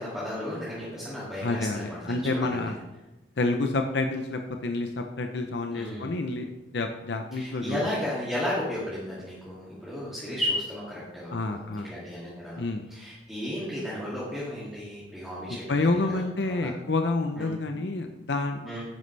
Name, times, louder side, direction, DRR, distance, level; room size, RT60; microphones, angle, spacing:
voice 1, 0.0-2.6 5.7-6.2 7.3-16.7 17.4-17.5 18.6-18.8, left 1 dB, 5° right, -9 dB, 2.4 m, -34 dB
voice 2, 1.4-2.7 3.4-7.9 11.3-11.9 12.6-12.8 15.5-18.6, left 2 dB, 70° left, 5 dB, 0.7 m, -29 dB
10.5 x 9.3 x 3.3 m, 1.0 s
head